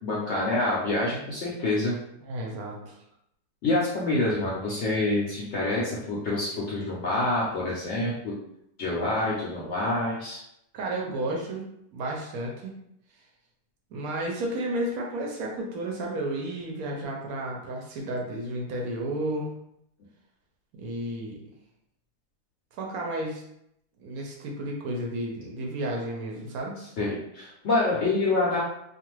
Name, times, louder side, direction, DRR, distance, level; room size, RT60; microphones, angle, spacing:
voice 1, 0.0-2.0 3.6-8.4 8.8-10.4 27.0-28.6, left 2 dB, 60° left, -5 dB, 0.7 m, -27 dB
voice 2, 2.2-3.0 9.2-9.3 10.7-11.7 11.9-12.7 13.9-19.5 20.8-21.4 22.8-23.4 24.0-26.8, right 1 dB, 70° right, -1 dB, 1.0 m, -32 dB
2.5 x 2.4 x 3.0 m, 0.78 s
omnidirectional pair, 1.7 m